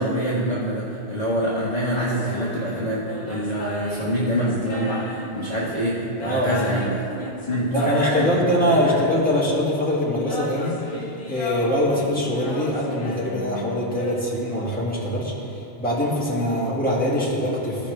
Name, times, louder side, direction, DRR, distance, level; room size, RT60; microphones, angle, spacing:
voice 1, 0.0-6.9 7.5-8.4 8.8-9.0, equal, 40° left, -8 dB, 1.2 m, -25 dB
sound 1, 1.9-9.5 10.1-14.7, equal, 55° left, 1.5 m, -35 dB
voice 2, 7.7-17.9, equal, 10° left, -8 dB, 1.8 m, -23 dB
15.0 x 5.1 x 3.3 m, 2.8 s
omnidirectional pair, 1.2 m